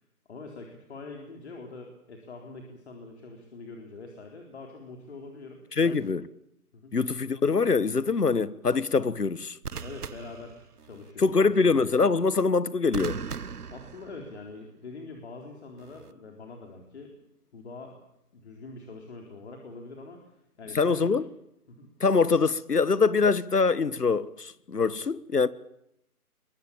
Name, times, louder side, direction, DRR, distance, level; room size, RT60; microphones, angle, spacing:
voice 1, 0.3-6.1 6.7-7.0 9.8-11.8 13.7-17.1 17.5-18.0 18.3-20.3 20.6-21.3 21.7-21.9, left 3 dB, 45° left, 4.1 m, -44 dB
voice 2, 5.8-6.2 6.9-9.6 11.2-13.2 20.7-21.2 22.0-25.5, left 4 dB, 90° left, 1.5 m, -24 dB
sound 1, 5.8-6.1 9.6-11.1 12.9-14.6 15.8-16.1, right 6 dB, 80° right, 1.0 m, -39 dB
23.0 x 22.5 x 8.7 m
figure-of-eight pair, 155°, 45 cm